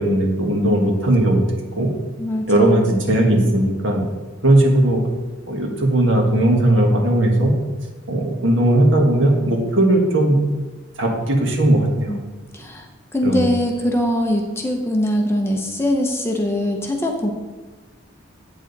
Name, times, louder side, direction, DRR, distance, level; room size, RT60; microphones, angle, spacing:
voice 1, 0.0-1.4 1.7-1.9 2.5-4.0 4.4-5.0 5.5-7.5 8.1-10.4 11.0-12.2 13.2-13.5, right 1 dB, 65° right, 1 dB, 1.6 m, -17 dB
voice 2, 2.2-3.0 12.1-12.2 12.5-12.9 13.1-17.3, left 1 dB, 10° left, 1 dB, 0.9 m, -22 dB
8.8 x 6.9 x 4.1 m, 1.2 s
head